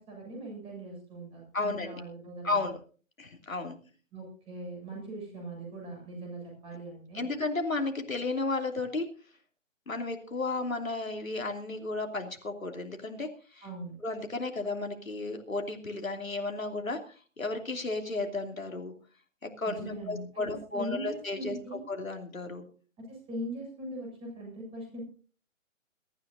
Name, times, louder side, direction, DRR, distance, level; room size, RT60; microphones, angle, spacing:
voice 1, 0.0-2.7 4.1-7.3 13.6-14.0 19.7-21.9 23.0-25.0, right 1 dB, 15° right, 0 dB, 7.4 m, -41 dB
voice 2, 1.5-1.9 2.4-2.8 3.2-3.8 7.1-9.0 9.9-13.6 14.0-18.9 19.4-22.7, left 3 dB, 85° left, 4 dB, 3.0 m, -33 dB
22.5 x 14.0 x 2.7 m, 0.38 s
figure-of-eight pair, 140°, 40 cm